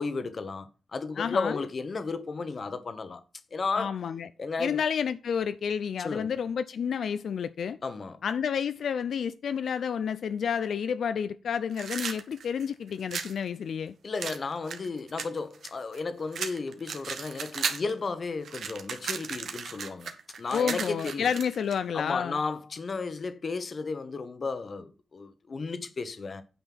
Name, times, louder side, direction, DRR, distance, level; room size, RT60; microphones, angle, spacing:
voice 1, 0.0-3.2 3.5-3.9 4.4-4.8 6.0-6.3 7.8-8.2 14.0-21.3 21.9-26.4, left 4 dB, 40° left, 1.0 m, -34 dB
voice 2, 1.2-1.6 3.8-4.3 4.6-7.8 8.2-13.9 20.5-22.4, left 7 dB, 80° left, 0.4 m, -30 dB
sound 1, 11.7-13.4 14.2-16.0 16.3-17.9 18.2-21.8, right 6 dB, 80° right, 1.3 m, -35 dB
9.3 x 5.4 x 5.9 m
wide cardioid pair, 175°, 0 cm